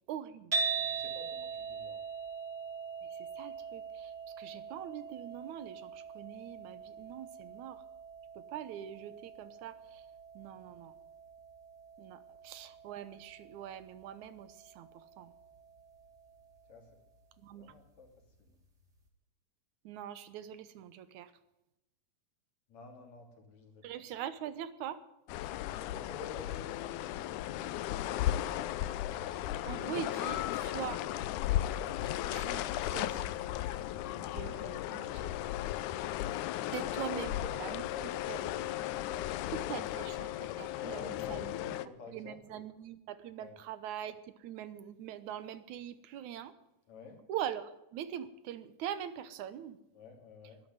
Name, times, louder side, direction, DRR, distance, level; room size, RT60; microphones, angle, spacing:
voice 1, 0.1-0.5 3.1-7.8 8.4-10.1 10.3-10.9 12.0-15.3 17.4-17.8 19.8-21.3 23.8-25.0 29.6-31.0 32.3-33.3 34.2-35.3 36.7-37.8 38.3-38.4 39.5-41.7 42.1-46.5 47.3-49.8, right 10 dB, 75° right, 14 dB, 2.4 m, -43 dB
sound 1, 0.5-16.7, right 5 dB, 30° right, 3.4 m, -42 dB
voice 2, 0.7-2.0 16.7-16.9 17.4-18.1 18.4-18.6 22.7-23.8 25.9-28.8 37.1-39.5 40.7-42.4 43.4-43.6 46.9-47.2 49.9-50.6, left 3 dB, 60° left, 3 dB, 4.2 m, -50 dB
sound 2, 25.3-41.9, left 13 dB, 80° left, 2.1 m, -35 dB
12.0 x 11.5 x 9.4 m, 0.90 s
omnidirectional pair, 3.6 m